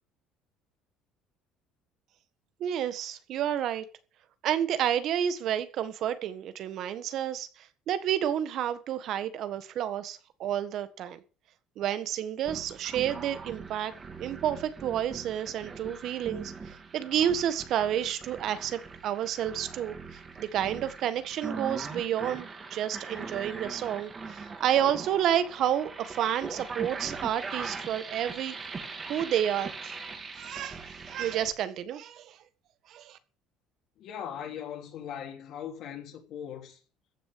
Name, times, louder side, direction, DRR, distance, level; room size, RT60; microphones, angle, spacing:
voice 1, 2.6-3.8 4.4-11.2 11.8-13.9 14.2-28.6 29.1-30.0 30.3-30.8 31.1-32.4 32.9-33.2, right 10 dB, 50° right, 1.5 m, -30 dB
sound 1, 12.5-31.5, right 4 dB, 20° right, 2.3 m, -41 dB
voice 2, 34.0-36.8, left 9 dB, 50° left, 3.1 m, -39 dB
14.5 x 6.4 x 8.4 m
cardioid pair, 155°, 0 cm